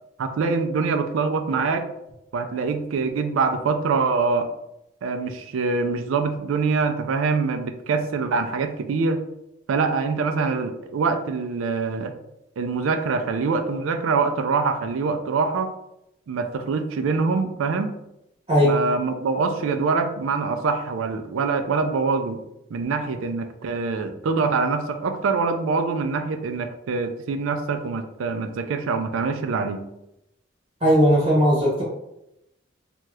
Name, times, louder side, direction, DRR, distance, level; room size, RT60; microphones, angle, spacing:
voice 1, 0.2-1.9 2.3-4.5 5.0-9.2 9.7-12.1 12.6-15.7 16.3-17.9 18.6-22.4 22.7-29.9, right 4 dB, 85° right, 7 dB, 0.4 m, -24 dB
voice 2, 30.8-31.8, equal, 25° right, -6 dB, 0.8 m, -17 dB
2.7 x 2.3 x 3.2 m, 0.85 s
head